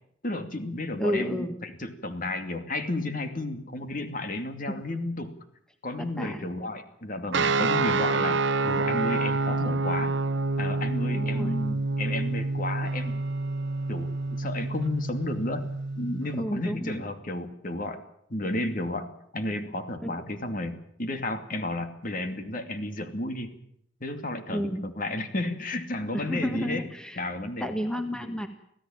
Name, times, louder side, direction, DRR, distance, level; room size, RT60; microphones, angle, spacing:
voice 1, 0.2-5.3 5.8-8.4 8.6-10.2 10.6-13.2 13.9-15.6 16.0-18.0 18.3-23.6 24.0-26.9 27.2-27.7, left 2 dB, 45° left, 7 dB, 2.6 m, -32 dB
voice 2, 1.0-1.6 4.7-4.8 6.0-6.4 11.1-11.6 16.3-17.0 20.0-20.1 24.5-24.8 26.1-27.2 27.6-28.5, equal, 5° left, 6 dB, 1.7 m, -31 dB
sound 1, 7.3-16.3, right 3 dB, 65° right, 0.9 m, -27 dB
25.5 x 16.0 x 8.9 m, 0.72 s
head